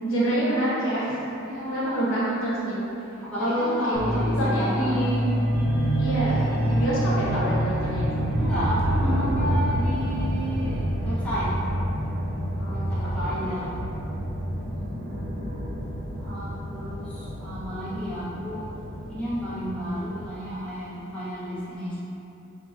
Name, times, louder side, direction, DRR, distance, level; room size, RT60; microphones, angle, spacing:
voice 1, 0.0-2.8 3.4-5.3 6.0-8.3 12.6-13.3 14.6-15.2 17.2-17.3, right 1 dB, 65° left, -8 dB, 0.9 m, -27 dB
voice 2, 1.3-2.1 3.2-4.9 8.4-11.5 12.9-13.7 16.2-18.7 19.1-22.0, equal, 5° left, -12 dB, 0.8 m, -32 dB
sound 1, 3.9-20.3, right 1 dB, 50° right, 0.5 m, -27 dB
3.8 x 2.0 x 2.5 m, 3.0 s
head